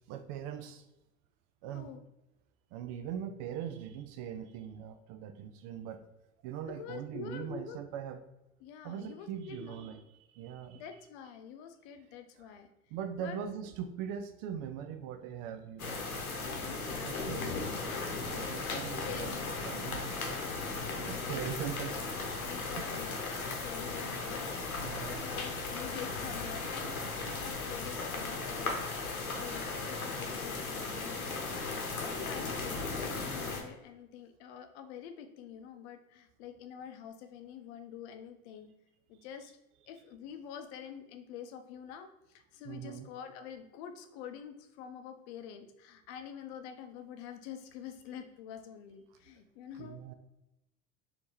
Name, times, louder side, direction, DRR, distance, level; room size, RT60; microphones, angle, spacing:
voice 1, 0.1-0.9 1.6-1.9 2.7-6.1 6.4-8.2 8.8-10.8 12.9-16.0 17.0-20.4 21.1-22.3 22.8-22.9 24.8-25.4 42.6-43.1 49.8-50.1, right 9 dB, 45° right, 9 dB, 0.5 m, -41 dB
voice 2, 6.7-7.8 8.6-9.9 10.7-12.7 13.2-13.4 16.6-17.7 18.6-19.6 21.2-21.5 22.4-26.9 27.4-31.2 32.0-38.7 39.1-39.5 39.9-50.0, left 8 dB, 55° left, 7 dB, 0.7 m, -47 dB
sound 1, 15.8-33.6, left 3 dB, 85° left, 0.9 m, -37 dB
4.4 x 2.8 x 3.0 m, 0.90 s
hypercardioid pair, 80°, 42 cm